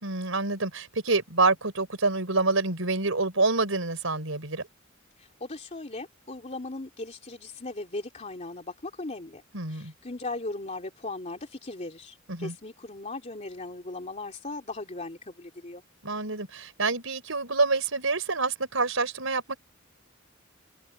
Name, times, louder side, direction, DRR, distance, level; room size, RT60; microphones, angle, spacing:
voice 1, 0.0-4.7 9.5-9.9 12.3-12.5 16.0-19.6, right 3 dB, 85° right, 4.4 m, -27 dB
voice 2, 5.2-9.4 9.7-15.8, left 2 dB, 35° left, 3.0 m, -38 dB
head